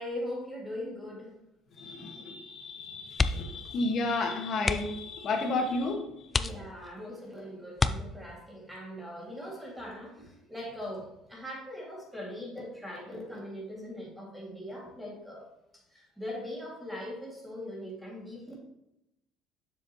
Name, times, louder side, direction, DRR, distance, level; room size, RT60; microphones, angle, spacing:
voice 1, 0.0-1.4 6.3-15.5 15.9-18.6, left 1 dB, 5° right, -3 dB, 2.2 m, -40 dB
voice 2, 1.8-6.0, left 3 dB, 45° left, 2 dB, 1.5 m, -32 dB
sound 1, 3.1-3.7 3.9-4.1 4.6-5.1 5.7-5.8 6.3-7.0 7.7-8.5 10.1-10.4 10.8-10.9, left 3 dB, 20° left, 0.3 m, -30 dB
7.1 x 6.9 x 3.0 m, 0.85 s
cardioid pair, 140°, 0 cm